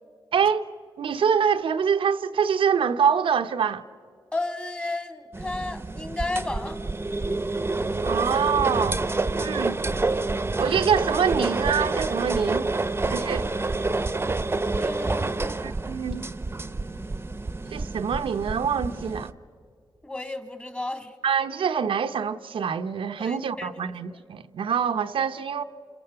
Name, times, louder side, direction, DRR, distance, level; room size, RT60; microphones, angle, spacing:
voice 1, 0.3-0.7 1.0-3.8 8.0-9.0 9.4-9.8 10.6-12.7 13.1-13.5 15.6-16.3 17.7-19.3 21.2-25.6, right 7 dB, 85° right, 0.8 m, -25 dB
voice 2, 4.3-6.8 14.8-15.6 20.0-21.1 23.2-24.2, left 2 dB, 15° left, 2.1 m, -33 dB
sound 1, 5.3-19.3, right 3 dB, 25° right, 0.9 m, -28 dB
29.0 x 28.0 x 6.8 m
cardioid pair, 85°, 9 cm